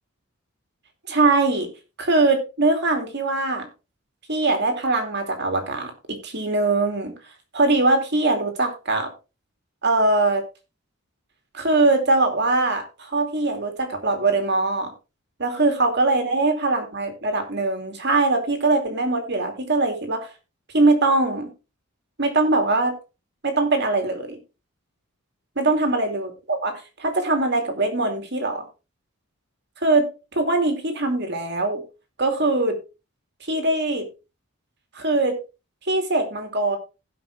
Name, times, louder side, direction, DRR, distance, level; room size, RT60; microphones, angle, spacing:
voice 1, 1.1-1.7 2.0-3.7 4.3-7.1 7.5-9.1 9.8-10.5 11.5-14.9 15.4-20.3 20.7-21.5 22.2-23.0 23.4-24.4 25.6-28.6 29.8-31.8 32.2-32.8 33.5-34.1 34.9-35.4 35.9-36.8, right 2 dB, 50° right, 5 dB, 2.6 m, -22 dB
17.0 x 5.9 x 3.4 m, 0.29 s
head